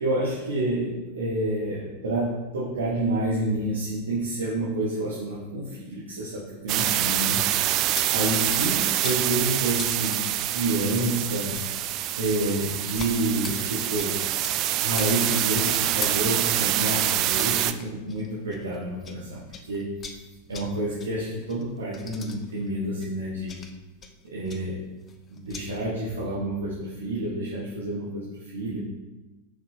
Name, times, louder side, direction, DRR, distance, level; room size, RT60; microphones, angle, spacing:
voice 1, 0.0-7.4 7.8-10.2 10.5-11.5 12.2-14.2 14.8-19.9 20.5-23.5 24.2-24.8 25.3-28.8, right 1 dB, 70° right, -7 dB, 1.7 m, -29 dB
sound 1, 6.7-17.7, right 13 dB, 40° right, 0.4 m, -26 dB
sound 2, 7.7-19.2 19.5-25.7, left 5 dB, 25° left, 0.8 m, -42 dB
6.4 x 5.9 x 4.8 m, 1.1 s
figure-of-eight pair, 90°, 0 cm